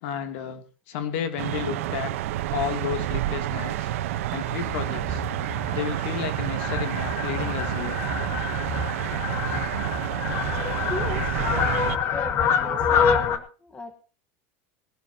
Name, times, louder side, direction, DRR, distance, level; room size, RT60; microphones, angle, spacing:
voice 1, 0.0-2.1 2.5-3.9 4.3-5.2 5.7-8.0, left 9 dB, 60° left, 7 dB, 2.9 m, -32 dB
sound 1, 1.4-12.0, right 14 dB, 80° right, 1.1 m, -29 dB
Fowl, 3.9-13.4, left 6 dB, 35° left, 1.9 m, -27 dB
voice 2, 10.9-14.0, left 2 dB, 15° left, 7 dB, 1.4 m, -37 dB
21.0 x 13.0 x 2.9 m, 0.37 s
supercardioid pair, 160°, 7 cm